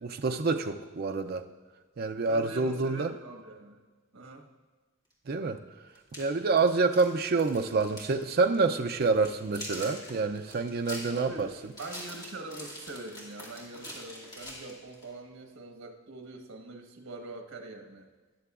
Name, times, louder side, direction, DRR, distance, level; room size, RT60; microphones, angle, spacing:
voice 1, 0.0-1.4 2.0-3.1 5.3-5.6 6.2-11.5, right 4 dB, 50° right, 6 dB, 0.4 m, -27 dB
voice 2, 2.2-3.8 4.1-4.5 11.1-11.5 11.8-18.1, right 2 dB, 80° right, 4 dB, 1.3 m, -44 dB
sound 1, 5.1-5.2 5.9-8.2 8.4-8.6 9.0-15.1, left 1 dB, 20° left, 2.3 m, -44 dB
19.5 x 6.7 x 2.4 m, 1.3 s
head